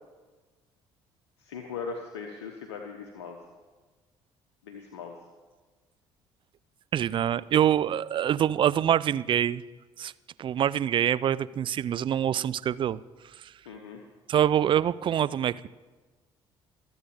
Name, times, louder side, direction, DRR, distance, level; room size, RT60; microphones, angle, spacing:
voice 1, 1.4-3.4 4.6-5.1 13.7-14.0, left 5 dB, 70° left, 3 dB, 1.0 m, -39 dB
voice 2, 6.9-9.6 10.0-10.1 10.4-13.0 14.3-15.7, right 10 dB, 35° right, 18 dB, 0.4 m, -25 dB
23.5 x 8.1 x 5.0 m, 1.3 s
figure-of-eight pair, 50°, 14 cm